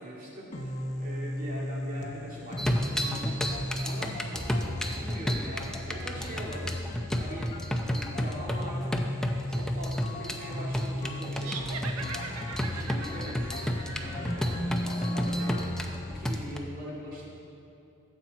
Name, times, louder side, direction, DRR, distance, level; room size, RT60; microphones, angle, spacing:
voice 1, 0.0-4.5 4.9-6.9 7.2-7.6 7.8-9.1 9.5-11.9 12.7-15.6 16.1-17.3, equal, 40° right, -4 dB, 2.3 m, -42 dB
sound 1, 0.5-16.5, left 1 dB, 35° left, 0.9 m, -35 dB
sound 2, 2.6-16.6, equal, 5° left, 0.6 m, -32 dB
sound 3, 11.4-14.8, right 4 dB, 85° right, 0.9 m, -41 dB
13.5 x 7.6 x 4.1 m, 2.9 s
head